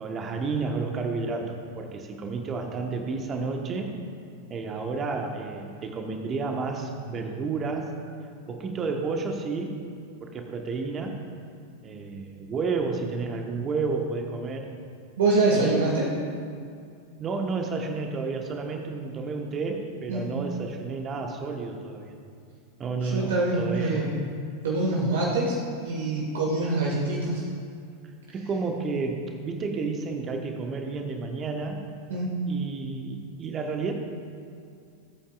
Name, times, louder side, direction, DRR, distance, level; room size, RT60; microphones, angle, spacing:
voice 1, 0.0-3.9 4.5-8.0 8.5-9.8 10.2-11.2 11.8-14.7 15.5-15.8 17.2-22.1 22.8-24.1 28.3-31.9 32.4-33.9, right 4 dB, 25° right, 3 dB, 1.4 m, -31 dB
voice 2, 15.2-16.1 20.1-20.2 23.0-24.2 24.6-27.4 32.1-32.3, right 2 dB, 60° right, -4 dB, 2.0 m, -25 dB
19.5 x 8.7 x 2.5 m, 2.4 s
figure-of-eight pair, 90°, 0 cm